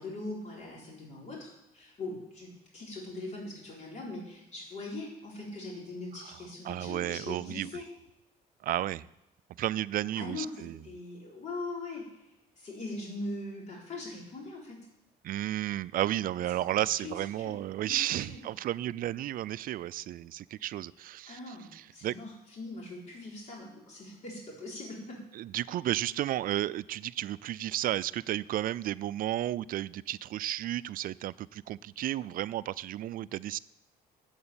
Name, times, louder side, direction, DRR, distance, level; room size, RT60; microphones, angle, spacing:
voice 1, 0.0-7.9 10.1-12.3 12.6-14.8 16.7-18.4 21.3-25.2, left 2 dB, 45° left, -3 dB, 3.8 m, -41 dB
voice 2, 6.6-7.7 8.6-9.1 9.6-10.8 15.2-22.2 25.3-33.6, right 13 dB, 55° right, 18 dB, 0.4 m, -33 dB
8.7 x 8.1 x 8.7 m, 0.89 s
cardioid pair, 110°, 17 cm